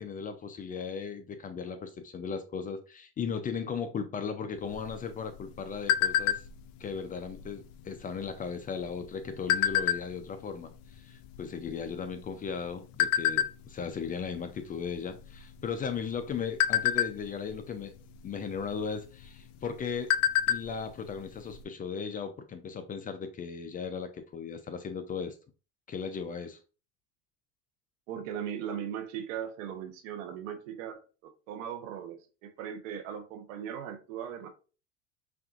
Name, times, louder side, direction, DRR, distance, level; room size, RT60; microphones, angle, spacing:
voice 1, 0.0-6.4 6.8-17.9 18.2-20.1 20.5-25.3 25.9-26.6, left 6 dB, 25° left, 0.4 m, -37 dB
sound 1, 4.7-6.7 7.2-7.5 7.7-8.1 8.8-10.3 10.9-11.0 11.2-12.5 13.0-13.5 14.0-14.3 14.6-14.8 15.2-15.8 16.2-17.6 18.7-18.8 19.2-19.3 19.7-20.8 21.0-21.1 21.5-21.6, left 11 dB, 80° left, 0.5 m, -27 dB
voice 2, 28.1-34.5, right 9 dB, 80° right, 1.0 m, -38 dB
5.8 x 2.6 x 2.4 m
supercardioid pair, 120°, 38 cm